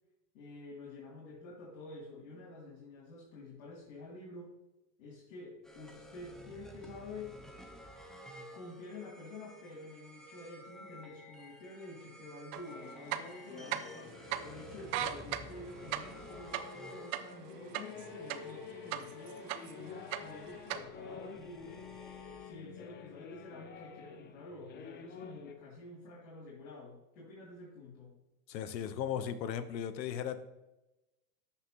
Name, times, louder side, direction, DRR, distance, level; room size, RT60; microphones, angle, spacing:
voice 1, 0.3-4.5 5.0-7.4 8.5-21.8 22.4-28.1, left 2 dB, 55° left, -5 dB, 2.9 m, -49 dB
sound 1, 5.6-22.9, equal, ahead, 0.9 m, -53 dB
sound 2, 12.5-12.6 13.0-14.0 14.3-14.4 14.8-18.6 18.9-19.8 20.1-20.8, right 12 dB, 30° right, 0.4 m, -37 dB
sound 3, 12.7-25.5, left 7 dB, 20° left, 0.5 m, -50 dB
voice 2, 28.5-30.4, left 9 dB, 80° left, 12 dB, 1.0 m, -36 dB
13.0 x 5.8 x 3.0 m, 0.99 s
hypercardioid pair, 115°, 50 cm